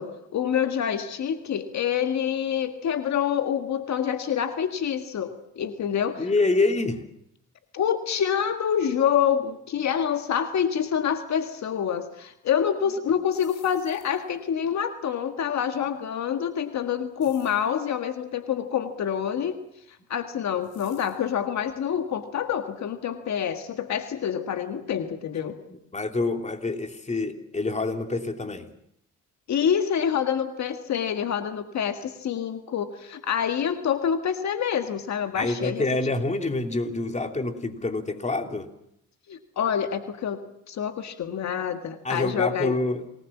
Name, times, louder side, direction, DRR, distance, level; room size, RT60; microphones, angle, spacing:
voice 1, 0.0-6.3 7.7-19.6 20.1-25.6 29.5-35.9 39.3-40.4 40.7-42.7, left 8 dB, 65° left, 7 dB, 1.8 m, -27 dB
voice 2, 6.2-7.0 25.7-28.7 35.3-38.7 42.0-43.0, left 2 dB, 25° left, 6 dB, 3.0 m, -27 dB
sound 1, 13.3-14.4 17.2-17.7 20.6-21.3, left 7 dB, 80° left, 7.3 m, -54 dB
28.0 x 20.0 x 7.3 m, 0.77 s
cardioid pair, 90°, 30 cm